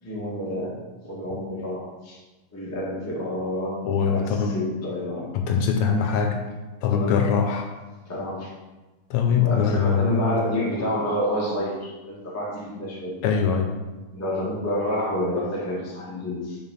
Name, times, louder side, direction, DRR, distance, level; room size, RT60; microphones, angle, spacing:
voice 1, 0.0-2.2 2.5-3.8 4.1-5.3 6.9-7.3 8.1-8.5 9.3-13.1 14.1-16.6, left 1 dB, 10° left, -6 dB, 0.8 m, -29 dB
voice 2, 3.8-4.6 5.3-6.4 6.8-7.7 9.1-10.3 13.2-13.7, left 6 dB, 75° left, 4 dB, 1.8 m, -22 dB
5.7 x 4.9 x 5.5 m, 1.2 s
omnidirectional pair, 3.5 m